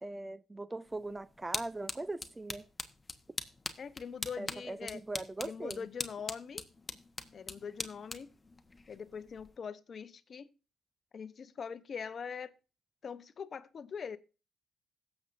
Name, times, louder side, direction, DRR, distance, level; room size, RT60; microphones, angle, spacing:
voice 1, 0.0-2.7 4.4-5.9, right 2 dB, 15° right, 0.4 m, -40 dB
sound 1, 0.9-9.6, left 3 dB, 20° left, 1.1 m, -43 dB
voice 2, 3.8-5.0 5.4-6.7 7.3-8.3 8.9-10.5 11.1-12.5 13.0-14.2, left 6 dB, 50° left, 0.8 m, -42 dB
16.5 x 7.1 x 2.6 m
cardioid pair, 90°, 0 cm